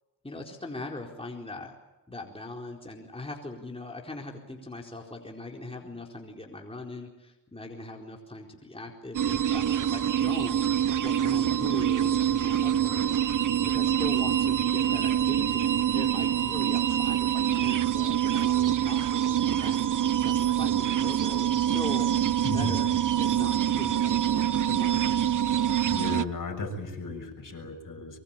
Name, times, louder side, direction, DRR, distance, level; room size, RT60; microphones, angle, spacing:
voice 1, 0.2-1.7 2.1-10.6 11.0-13.2 13.5-22.9 23.2-25.3, left 2 dB, 15° left, 0 dB, 4.4 m, -41 dB
sound 1, 9.1-26.2, right 10 dB, 45° right, 0.9 m, -25 dB
voice 2, 22.4-22.7 25.9-28.2, left 2 dB, 50° left, 5 dB, 6.6 m, -35 dB
24.0 x 24.0 x 9.1 m, 1.0 s
cardioid pair, 70°, 42 cm